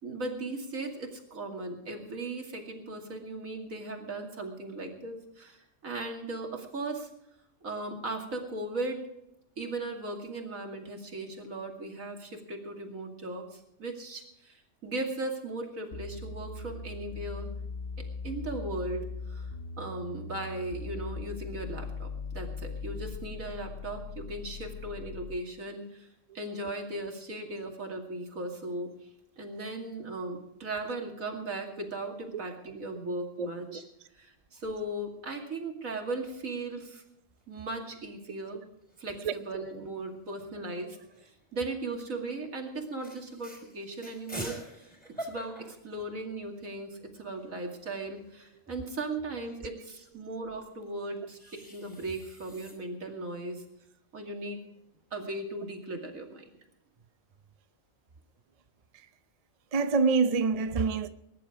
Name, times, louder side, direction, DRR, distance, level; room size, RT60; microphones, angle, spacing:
voice 1, 0.0-7.1 7.6-9.0 9.6-17.5 18.0-19.5 19.8-26.1 26.3-28.9 29.4-33.8 34.1-37.0 37.5-38.6 39.0-41.0 41.2-44.9 45.2-51.4 51.7-53.6 54.1-54.6 55.1-56.5, right 2 dB, 80° right, 2.9 m, -37 dB
sound 1, 15.9-25.5, left 4 dB, 50° left, 1.1 m, -40 dB
voice 2, 33.4-33.8 39.2-39.3 59.7-61.1, right 4 dB, 35° right, 0.6 m, -26 dB
sound 2, 37.4-38.0 38.4-38.5 38.7-39.3 40.2-41.5 42.1-42.3 42.7-42.8 43.0-46.7 47.0-47.1 47.3-49.6 50.8-52.7, equal, 5° left, 4.6 m, -46 dB
20.5 x 11.0 x 5.0 m
omnidirectional pair, 1.4 m